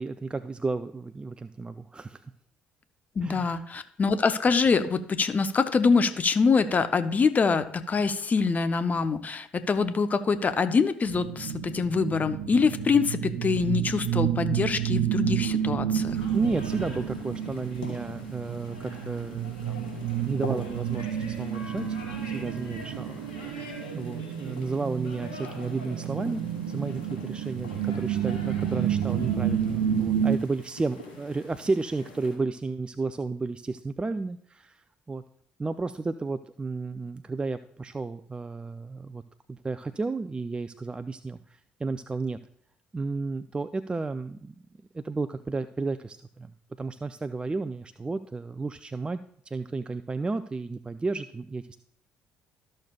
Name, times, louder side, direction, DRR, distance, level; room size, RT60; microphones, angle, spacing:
voice 1, 0.0-2.2 3.2-3.6 16.3-22.0 22.3-35.2 35.6-39.2 39.5-42.4 42.9-44.5 44.9-49.2 49.5-51.8, right 3 dB, 20° right, 11 dB, 0.4 m, -33 dB
voice 2, 3.2-16.2, left 5 dB, 35° left, 10 dB, 0.7 m, -25 dB
sound 1, 11.0-30.4, right 9 dB, 70° right, 0.6 m, -30 dB
sound 2, 16.0-32.4, left 2 dB, 90° left, 2.0 m, -44 dB
13.5 x 6.5 x 2.3 m, 0.63 s
hypercardioid pair, 50°, 5 cm